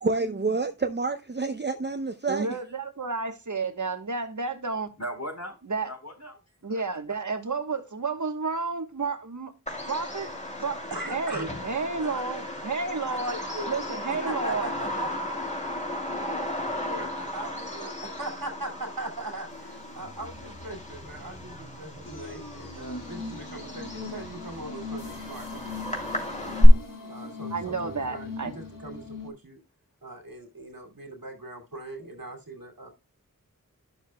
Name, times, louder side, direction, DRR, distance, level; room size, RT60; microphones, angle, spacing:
voice 1, 0.0-2.6, right 3 dB, 30° right, 0.6 m, -28 dB
voice 2, 2.3-4.9 5.7-5.9 6.6-9.5 9.9-10.3 10.6-10.8 11.1-13.4 13.7-14.7 27.5-28.5, right 4 dB, 60° right, 1.2 m, -31 dB
voice 3, 5.0-6.8 17.0-17.5, equal, 50° left, 4.2 m, -39 dB
Bird vocalization bird call bird song, 9.7-26.7, equal, 20° left, 2.7 m, -31 dB
voice 4, 10.9-11.5 12.0-12.4 13.0-13.7 14.1-15.1 16.9-26.6 27.1-29.6 30.0-32.9, right 2 dB, 80° right, 2.4 m, -40 dB
sound 1, 19.5-29.3, left 3 dB, 70° left, 1.8 m, -41 dB
11.5 x 6.8 x 2.2 m
wide cardioid pair, 50°, 34 cm